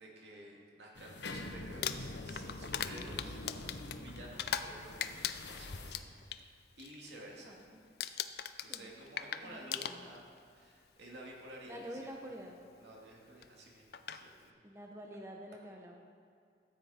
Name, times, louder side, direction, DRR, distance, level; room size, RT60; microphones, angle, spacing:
voice 1, 0.0-6.5 6.8-7.6 8.6-10.3 10.6-12.0 12.8-14.5, right 1 dB, 75° right, -2 dB, 2.5 m, -52 dB
sound 1, 1.0-5.9, left 2 dB, 80° left, 0.9 m, -45 dB
Crumpling crinkling, 1.7-4.7 5.0-6.4 6.8-7.1 7.4-7.7 8.0-10.4 11.3-11.4 13.4-13.5 13.9-14.2, left 9 dB, 60° left, 0.5 m, -39 dB
voice 2, 7.4-7.8 8.7-9.0 9.4-9.6 9.9-10.1 11.7-12.6 14.6-16.0, equal, 15° right, 0 dB, 0.8 m, -47 dB
13.5 x 9.4 x 4.4 m, 2.4 s
head